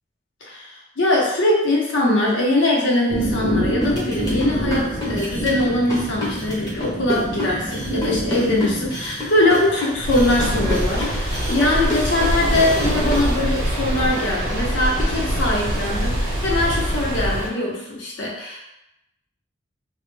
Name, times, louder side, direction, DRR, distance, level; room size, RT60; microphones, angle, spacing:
voice 1, 0.5-18.6, left 1 dB, 75° left, -3 dB, 0.6 m, -22 dB
sound 1, 3.1-10.9, right 1 dB, 35° right, 0.5 m, -27 dB
sound 2, 3.8-13.3, left 1 dB, 20° left, 0.5 m, -29 dB
sound 3, 10.0-17.5, equal, 90° right, 0.6 m, -24 dB
2.1 x 2.0 x 3.1 m, 0.88 s
head